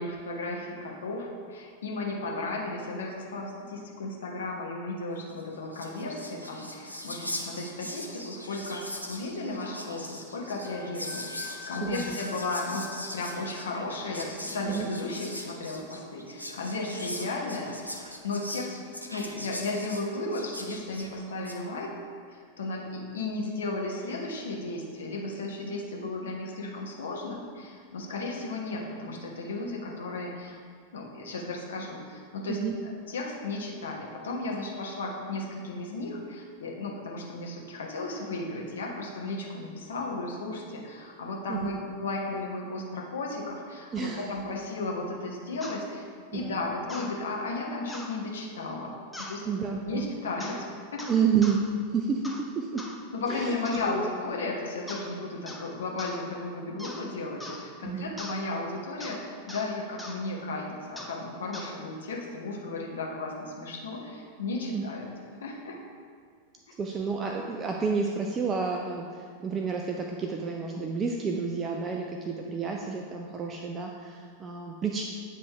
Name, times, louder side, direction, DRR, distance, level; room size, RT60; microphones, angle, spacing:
voice 1, 0.0-17.9 18.2-18.7 19.1-21.9 22.3-30.5 30.9-46.0 46.3-48.9 49.2-49.4 49.8-51.0 53.1-65.1 65.4-65.8, left 2 dB, 65° left, -1 dB, 1.1 m, -34 dB
Whispering, 5.4-5.5 5.7-21.6, left 1 dB, 90° left, 0.6 m, -41 dB
Wind instrument woodwind instrument, 10.6-13.4, left 3 dB, 65° right, 1.0 m, -44 dB
voice 2, 11.8-12.2 14.7-14.9 32.5-32.7 41.5-41.7 43.9-44.3 46.3-46.6 49.5-50.1 51.1-51.7 51.9-52.8 53.3-53.6 53.9-54.1 57.8-58.1 64.7-64.8 66.8-75.0, right 6 dB, 25° right, 1 dB, 0.5 m, -30 dB
sound 1, 45.6-45.8 46.9-47.1 47.9-48.1 49.1-49.4 50.4-50.6 51.0-51.6 52.2-52.5 52.8-53.0 53.6-53.9 54.9-55.1 55.5-55.7 56.0-56.2 56.8-57.0 57.4-57.6 58.2-58.4 59.0-59.2 59.5-59.7 60.0-60.2 61.0-61.2 61.5-61.7, left 1 dB, 5° left, 0.8 m, -41 dB
9.2 x 3.3 x 4.6 m, 2.1 s
figure-of-eight pair, 90°, 0 cm